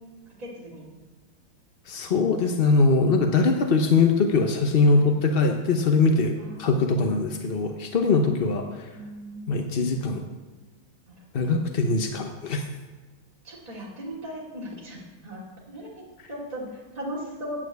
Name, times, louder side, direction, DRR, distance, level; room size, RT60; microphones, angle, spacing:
voice 1, 0.4-0.9 4.9-5.1 6.4-7.0 8.9-10.1 11.1-11.6 13.4-17.7, equal, 20° right, -5 dB, 2.7 m, -38 dB
voice 2, 1.9-8.9 9.5-10.2 11.3-12.6, left 3 dB, 55° left, 4 dB, 0.6 m, -22 dB
9.0 x 8.7 x 8.0 m, 1.3 s
omnidirectional pair, 2.2 m